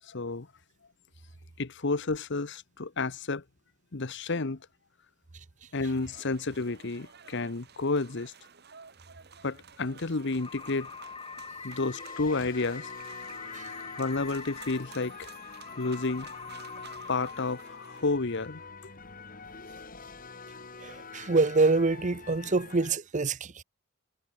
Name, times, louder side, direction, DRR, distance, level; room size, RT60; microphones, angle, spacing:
voice 1, 0.1-0.5 1.6-3.4 3.9-4.6 5.7-8.3 9.4-10.9 11.6-12.9 14.0-15.3 15.8-16.3 17.1-18.6, left 3 dB, 60° left, 1.0 m, -31 dB
voice 2, 5.3-5.7 13.5-13.7 20.8-23.6, right 3 dB, 35° right, 0.7 m, -26 dB
sound 1, 5.8-18.1, right 7 dB, 50° right, 2.8 m, -53 dB
sound 2, 9.4-10.6 11.4-22.9, left 4 dB, 45° left, 3.4 m, -47 dB
sound 3, 10.4-17.4, left 5 dB, 25° left, 2.0 m, -44 dB
head